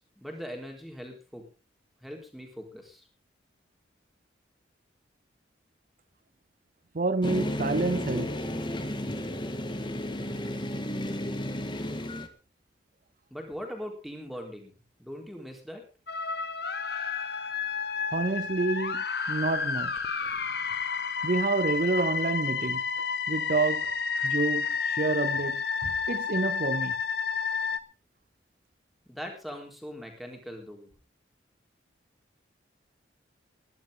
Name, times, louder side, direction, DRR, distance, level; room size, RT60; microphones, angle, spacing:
voice 1, 0.0-1.5 2.0-3.1 13.3-14.7 15.0-15.8 29.1-30.9, equal, ahead, 4.1 m, -41 dB
voice 2, 6.9-8.4 18.1-20.3 21.2-23.9 24.2-27.0, right 3 dB, 45° right, 0.6 m, -29 dB
sound 1, 7.2-12.3, left 1 dB, 25° left, 1.8 m, -33 dB
sound 2, 16.1-27.8, left 5 dB, 55° left, 1.5 m, -30 dB
20.0 x 11.5 x 3.8 m
head